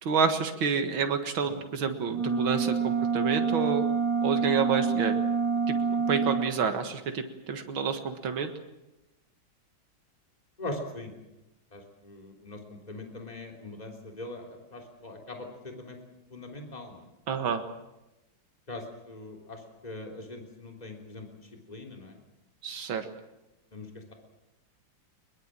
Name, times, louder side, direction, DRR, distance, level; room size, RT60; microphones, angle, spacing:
voice 1, 0.0-3.8 4.2-5.2 5.7-5.8 6.1-8.5 17.3-17.7 22.6-23.1, right 6 dB, 85° right, 7 dB, 2.5 m, -29 dB
sound 1, 2.1-6.5, right 5 dB, 60° right, 3.6 m, -27 dB
voice 2, 10.6-11.1 11.7-16.0 16.3-17.1 18.7-21.3 21.7-22.2 23.7-24.1, left 2 dB, 20° left, 2 dB, 3.4 m, -41 dB
22.0 x 22.0 x 7.6 m, 0.96 s
omnidirectional pair, 2.2 m